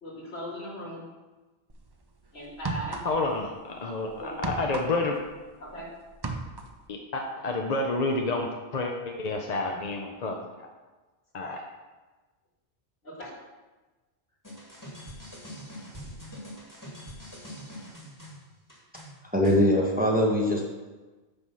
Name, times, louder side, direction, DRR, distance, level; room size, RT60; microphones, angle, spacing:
voice 1, 0.0-1.0 2.3-3.0 4.2-4.5 5.6-5.9 13.0-13.3, equal, 70° left, -4 dB, 2.4 m, -38 dB
sound 1, 1.7-1.9 2.5-3.4 3.7-5.8 6.1-6.8, right 3 dB, 30° right, 0.5 m, -35 dB
voice 2, 3.0-5.1 6.9-10.7 11.3-11.6, left 2 dB, 45° left, 2 dB, 0.7 m, -29 dB
sound 2, 14.4-19.6, equal, 15° left, 2.0 m, -44 dB
voice 3, 19.3-20.7, left 1 dB, 10° right, -2 dB, 0.9 m, -22 dB
9.5 x 3.5 x 6.1 m, 1.2 s
omnidirectional pair, 1.1 m